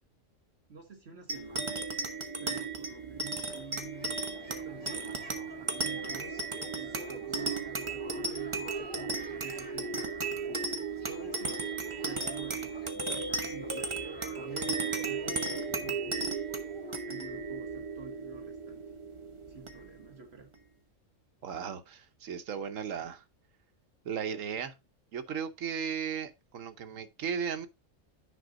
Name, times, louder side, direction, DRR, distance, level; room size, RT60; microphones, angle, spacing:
voice 1, 0.7-1.8 2.4-5.1 5.6-6.4 6.7-10.6 11.1-11.7 12.0-12.7 13.1-13.9 14.3-16.3 17.1-18.8 19.5-20.5, right 4 dB, 55° right, 1.4 m, -49 dB
sound 1, 1.3-20.1, right 4 dB, 25° right, 0.9 m, -35 dB
Tiny creatures babbling, 3.4-18.0, left 1 dB, 5° left, 3.9 m, -50 dB
voice 2, 21.4-23.2 24.0-24.7 25.1-27.7, right 7 dB, 80° right, 1.3 m, -36 dB
9.7 x 5.3 x 3.8 m
omnidirectional pair, 1.3 m